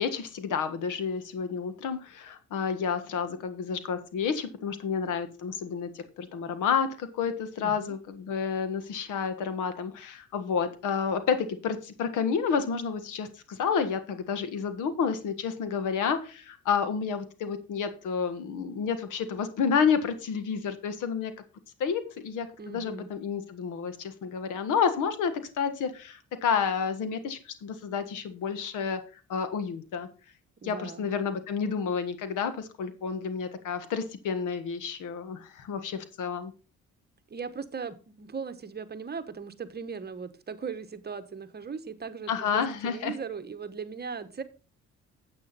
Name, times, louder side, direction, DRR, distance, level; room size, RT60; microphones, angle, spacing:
voice 1, 0.0-21.3 21.8-29.0 29.3-30.1 30.6-36.5 42.3-43.1, left 6 dB, 85° left, 10 dB, 1.6 m, -30 dB
voice 2, 7.6-7.9 22.6-23.1 30.6-31.1 37.3-44.4, right 5 dB, 35° right, 10 dB, 1.2 m, -38 dB
9.7 x 8.2 x 4.1 m, 0.34 s
cardioid pair, 90°, 30 cm